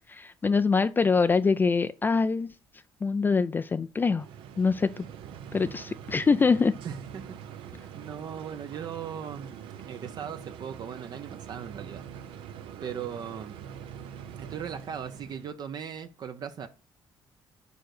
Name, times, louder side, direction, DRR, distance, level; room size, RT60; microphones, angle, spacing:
voice 1, 0.1-2.5 3.0-4.3 4.6-5.1 5.5-6.7, left 4 dB, 25° left, 0.3 m, -24 dB
sound 1, 4.2-15.5, right 8 dB, 85° right, 0.8 m, -44 dB
voice 2, 6.8-12.0 12.8-13.6 14.4-16.7, right 8 dB, 55° right, 0.7 m, -39 dB
6.9 x 3.9 x 6.4 m
cardioid pair, 105°, 9 cm